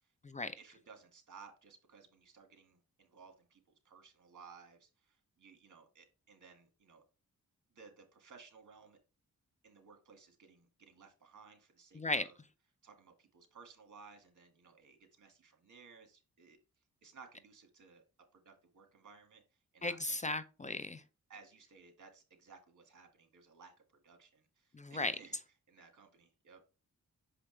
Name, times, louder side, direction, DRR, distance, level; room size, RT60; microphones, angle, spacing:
voice 1, 0.6-7.0 7.7-9.0 9.6-12.4 12.8-16.6 17.0-18.0 18.3-19.4 19.7-20.2 21.3-25.4 25.7-26.7, right 5 dB, 65° right, 1.9 m, -58 dB
voice 2, 11.9-12.3 19.8-21.0 24.7-25.1, left 2 dB, 25° left, 0.5 m, -36 dB
6.5 x 5.0 x 3.2 m
cardioid pair, 85°, 32 cm